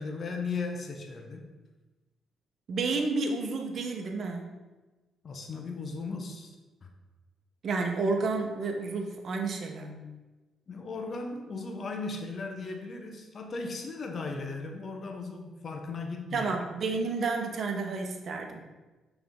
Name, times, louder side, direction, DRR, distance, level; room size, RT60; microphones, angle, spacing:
voice 1, 0.0-1.5 5.2-6.5 6.8-6.9 10.7-16.6, left 3 dB, 45° left, 4 dB, 1.0 m, -37 dB
voice 2, 2.7-4.5 7.6-10.1 16.3-18.6, right 3 dB, 55° right, 3 dB, 1.0 m, -31 dB
5.9 x 3.5 x 5.3 m, 1.2 s
cardioid pair, 90°, 0 cm